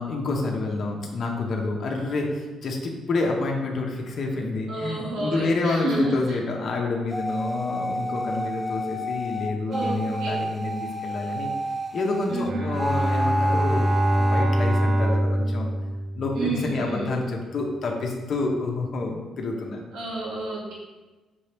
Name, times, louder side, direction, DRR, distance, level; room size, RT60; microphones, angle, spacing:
voice 1, 0.0-11.5 11.9-15.7 16.1-19.8, left 3 dB, 55° left, 0 dB, 0.7 m, -28 dB
voice 2, 4.7-6.4 9.7-10.3 12.3-12.5 16.4-17.1 19.9-20.7, right 2 dB, 75° right, -5 dB, 1.2 m, -29 dB
sound 1, 7.1-12.5 12.8-14.4, equal, ahead, 0.3 m, -30 dB
Bowed string instrument, 12.4-16.8, right 1 dB, 45° right, 0.6 m, -24 dB
5.3 x 2.8 x 3.3 m, 1.2 s
cardioid pair, 90°, 0 cm